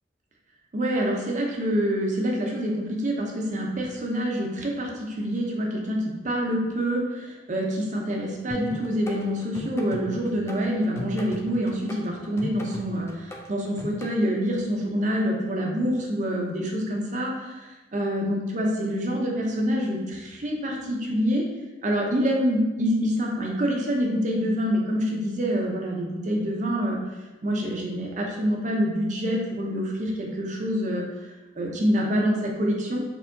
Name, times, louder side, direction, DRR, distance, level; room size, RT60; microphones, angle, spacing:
voice 1, 0.7-21.4 21.8-27.0 27.4-31.3 31.6-33.0, equal, 45° right, 0 dB, 0.6 m, -26 dB
sound 1, 8.5-14.1, left 1 dB, 15° left, 0.4 m, -38 dB
4.3 x 3.5 x 2.6 m, 1.2 s
head